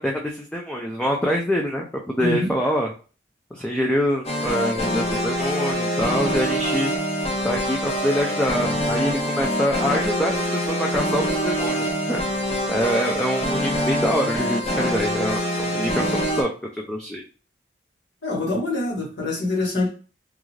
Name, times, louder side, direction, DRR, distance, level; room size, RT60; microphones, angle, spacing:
voice 1, 0.0-2.9 3.5-6.9 7.4-12.2 12.7-16.5 16.9-17.2, equal, 5° left, 0 dB, 0.3 m, -25 dB
voice 2, 2.2-2.5 18.2-19.9, left 2 dB, 85° left, -3 dB, 1.3 m, -25 dB
sound 1, 4.2-16.4, equal, 35° left, 0.7 m, -25 dB
2.4 x 2.3 x 3.1 m, 0.36 s
head